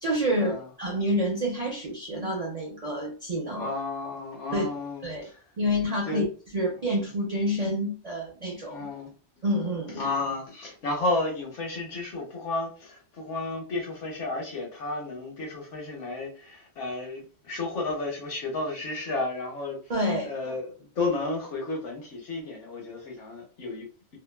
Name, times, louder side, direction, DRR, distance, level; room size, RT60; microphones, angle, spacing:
voice 1, 0.0-3.7 4.5-4.7 5.0-5.3 5.6-6.2 6.5-8.9 9.4-10.0 19.9-20.3, equal, 60° right, 0.4 m, -28 dB
voice 2, 3.6-5.4 6.1-6.3 6.8-6.9 8.7-9.1 9.9-19.8 20.2-24.2, left 2 dB, 65° left, 1.1 m, -32 dB
2.7 x 2.3 x 2.2 m
omnidirectional pair, 1.4 m